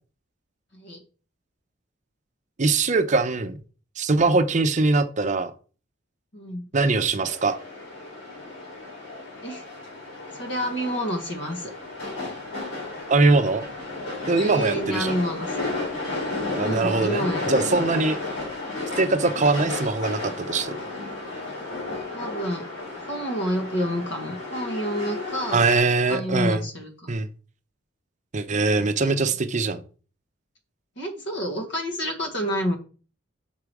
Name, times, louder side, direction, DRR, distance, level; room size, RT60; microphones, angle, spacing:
voice 1, 2.6-3.6 4.0-5.5 6.7-7.6 13.1-13.7 14.3-15.1 16.6-18.2 19.0-20.8 25.5-26.6 27.1-27.3 28.3-29.8, right 3 dB, 35° right, 0.5 m, -22 dB
voice 2, 6.3-6.6 9.4-9.6 10.3-11.7 14.4-15.5 16.6-17.4 22.1-22.7 23.0-25.6 26.1-27.2 29.0-29.1 31.0-32.8, equal, 60° left, 1.6 m, -29 dB
sound 1, 7.2-25.8, left 2 dB, 85° left, 4.1 m, -33 dB
6.0 x 4.8 x 4.7 m
head